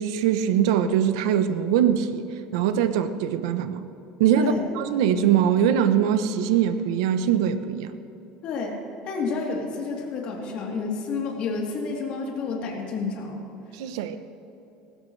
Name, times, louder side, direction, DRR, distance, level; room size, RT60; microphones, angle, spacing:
voice 1, 0.0-2.2 2.5-3.8 4.2-8.0 13.7-14.2, right 9 dB, 85° right, 10 dB, 0.9 m, -22 dB
voice 2, 4.3-4.7 8.4-8.8 9.0-13.4, left 4 dB, 50° left, -1 dB, 3.4 m, -30 dB
19.5 x 16.5 x 3.3 m, 3.0 s
cardioid pair, 140°, 2 cm